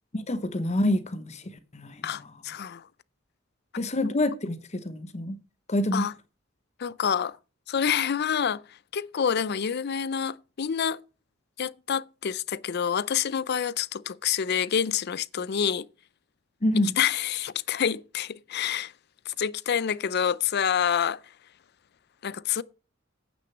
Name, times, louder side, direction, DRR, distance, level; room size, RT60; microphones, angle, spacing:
voice 1, 0.1-2.2 3.8-5.4 5.7-6.1 16.6-16.9, left 1 dB, 35° left, 0.8 m, -27 dB
voice 2, 2.0-2.9 5.9-6.1 6.8-7.4 7.7-11.0 11.6-15.9 17.0-18.9 19.3-21.2 22.2-22.6, left 8 dB, 55° left, 0.5 m, -27 dB
9.2 x 6.2 x 7.1 m
head